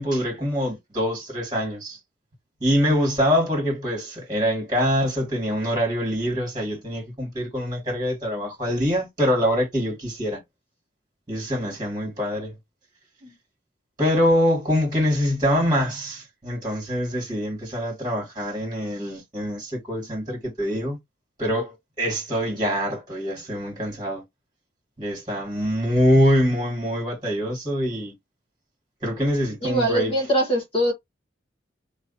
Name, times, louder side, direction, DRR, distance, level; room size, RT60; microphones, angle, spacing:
voice 1, 0.0-2.0 2.6-10.4 11.3-12.5 14.0-21.0 21.4-24.2 25.0-28.1 29.0-30.1, equal, 20° right, 2.0 m, -24 dB
voice 2, 29.6-30.9, right 1 dB, 30° left, 1.4 m, -23 dB
3.0 x 2.3 x 4.1 m
head